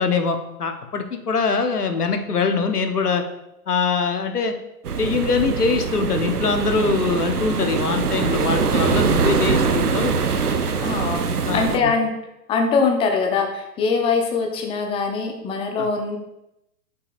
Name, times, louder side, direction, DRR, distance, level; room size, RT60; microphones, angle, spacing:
voice 1, 0.0-3.2 3.7-4.5 5.0-10.2 11.4-11.9 15.8-15.9, left 4 dB, 80° left, 6 dB, 1.1 m, -23 dB
sound 1, 4.8-11.8, right 5 dB, 80° right, 0.8 m, -23 dB
voice 2, 10.8-12.1 12.5-16.2, left 4 dB, 10° left, 4 dB, 0.7 m, -22 dB
8.2 x 6.8 x 2.5 m, 0.87 s
figure-of-eight pair, 120°, 45 cm